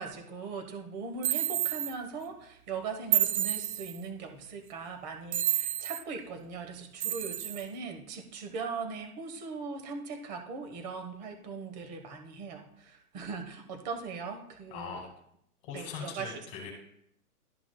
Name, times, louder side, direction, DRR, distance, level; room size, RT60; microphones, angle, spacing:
voice 1, 0.0-15.0 15.7-16.3, right 5 dB, 30° right, 5 dB, 1.2 m, -40 dB
sound 1, 1.2-1.9 3.1-4.0 5.3-6.0 7.0-7.6, right 10 dB, 65° right, 0.6 m, -29 dB
voice 2, 14.7-15.1 15.6-16.7, left 6 dB, 25° left, -1 dB, 2.1 m, -40 dB
12.5 x 5.9 x 2.3 m, 0.72 s
hypercardioid pair, 155°, 46 cm